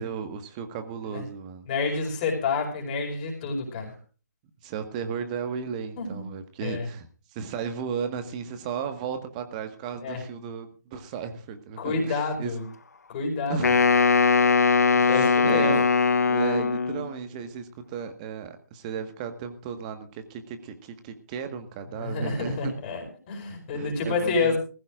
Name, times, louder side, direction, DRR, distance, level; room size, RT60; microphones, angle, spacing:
voice 1, 0.0-1.7 4.6-12.5 13.5-13.8 14.8-15.8 16.2-22.7 23.5-24.6, right 7 dB, 25° right, 8 dB, 1.6 m, -35 dB
voice 2, 1.7-3.9 6.0-6.3 6.6-6.9 10.0-10.2 11.8-12.6 13.1-13.6 15.1-15.7 21.9-24.6, left 4 dB, 30° left, 0 dB, 5.1 m, -28 dB
Wind instrument woodwind instrument, 13.6-17.1, left 5 dB, 65° left, 0.9 m, -21 dB
20.0 x 15.5 x 2.5 m, 0.36 s
figure-of-eight pair, 145°, 9 cm